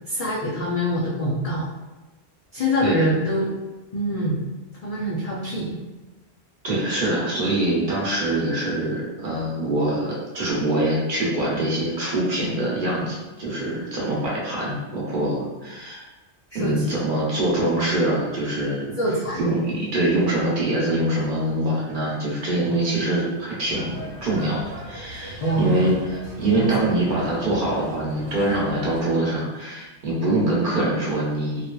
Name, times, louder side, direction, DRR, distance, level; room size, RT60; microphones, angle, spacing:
voice 1, 0.1-1.7 2.5-3.5 3.9-4.4 4.8-5.8 16.5-16.9 19.0-19.5 25.4-25.9 26.8-26.9 30.4-30.5, equal, 70° left, -5 dB, 0.3 m, -24 dB
voice 2, 6.6-16.0 16.5-18.9 19.4-31.7, right 1 dB, 50° right, -6 dB, 0.9 m, -24 dB
sound 1, 23.7-29.0, right 2 dB, 80° right, 1.0 m, -39 dB
2.7 x 2.4 x 2.2 m, 1.1 s
omnidirectional pair, 1.2 m